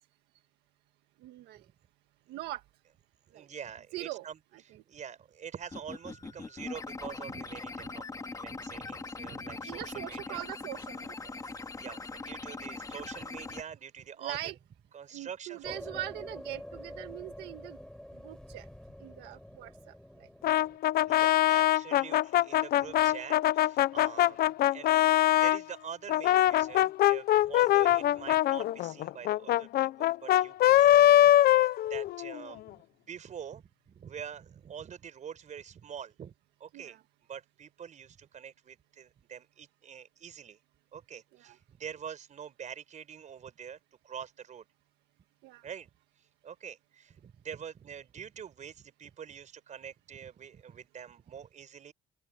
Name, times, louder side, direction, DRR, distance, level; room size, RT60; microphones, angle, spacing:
voice 1, 1.2-1.6 2.3-2.6 3.3-3.5 3.9-4.3 9.7-11.4 14.2-14.5 15.1-17.8 18.2-18.7 19.0-19.9 20.2-20.3 36.7-37.0 41.4-41.5 45.4-45.7, right 15 dB, 90° right, 1.6 m, -41 dB
voice 2, 3.3-4.4 4.7-10.4 11.8-14.5 14.9-15.8 21.0-25.0 25.3-36.3 36.6-37.0 37.3-40.6 40.9-43.8 44.0-44.7 45.6-45.9 46.4-51.9, right 8 dB, 45° right, 5.4 m, -45 dB
sound 1, 5.6-13.6, left 3 dB, 20° left, 1.9 m, -41 dB
sound 2, 15.6-20.8, left 1 dB, 5° left, 7.4 m, -46 dB
Brass instrument, 20.4-25.6 26.1-32.4, left 13 dB, 65° left, 0.7 m, -23 dB
open air
cardioid pair, 110°, 17 cm